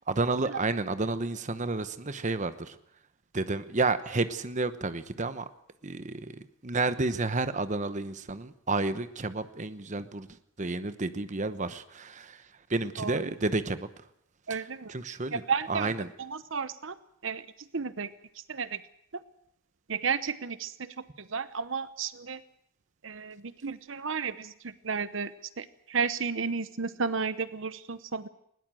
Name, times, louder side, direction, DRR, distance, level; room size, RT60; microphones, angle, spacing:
voice 1, 0.1-2.8 3.3-5.5 5.8-10.3 10.6-12.4 12.7-13.9 14.5-16.1, right 3 dB, 35° right, 12 dB, 0.9 m, -31 dB
voice 2, 14.5-14.9 15.3-15.9 16.2-16.9 17.2-17.4 17.7-18.1 18.5-18.8 19.9-20.9 21.3-22.4 23.0-24.5 24.8-25.3 25.6-28.3, right 5 dB, 65° right, 14 dB, 0.9 m, -32 dB
20.5 x 18.5 x 7.6 m, 0.74 s
head